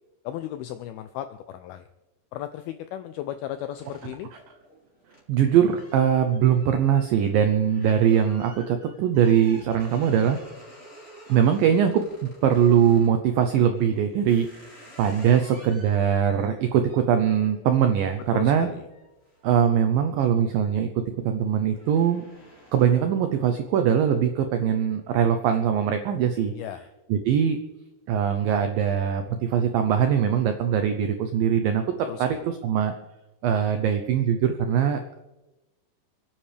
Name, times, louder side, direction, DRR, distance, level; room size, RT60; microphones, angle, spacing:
voice 1, 0.2-1.8 2.3-4.3 18.3-18.9 26.6-26.9 32.1-32.5, left 12 dB, 85° left, 9 dB, 2.2 m, -35 dB
sound 1, 3.8-13.2 13.8-20.2 20.6-21.0 21.3-23.1, equal, 20° left, 3.6 m, -51 dB
voice 2, 5.3-10.4 11.3-18.7 19.4-20.9 21.2-22.3 22.7-26.5 27.1-27.6 28.1-32.9 33.4-35.2, right 8 dB, 85° right, 7 dB, 2.0 m, -22 dB
29.5 x 10.0 x 3.4 m, 1.0 s
omnidirectional pair, 5.0 m